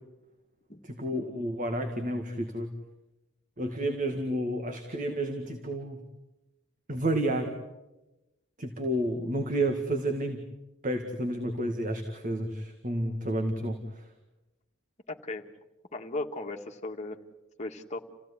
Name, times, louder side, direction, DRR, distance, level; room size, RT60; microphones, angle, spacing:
voice 1, 0.8-2.7 3.6-6.0 6.9-7.6 8.6-10.5 10.8-14.1, right 1 dB, 40° right, 5 dB, 2.0 m, -31 dB
voice 2, 15.1-15.5 15.9-17.2 17.6-18.0, left 2 dB, 35° left, 3 dB, 2.0 m, -36 dB
29.5 x 16.5 x 9.8 m, 1.0 s
head